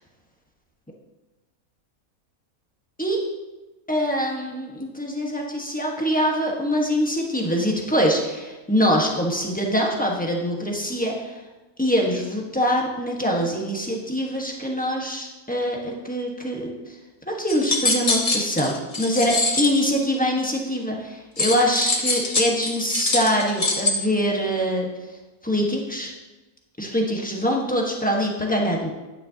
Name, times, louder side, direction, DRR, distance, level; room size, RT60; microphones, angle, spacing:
voice 1, 3.9-11.3 11.8-16.7 17.3-24.9 25.4-26.1 26.8-28.9, equal, 5° left, -1 dB, 1.2 m, -24 dB
sound 1, 17.5-19.8 21.4-23.9, left 2 dB, 30° left, 0.9 m, -24 dB
10.0 x 9.4 x 2.8 m, 1.1 s
omnidirectional pair, 1.5 m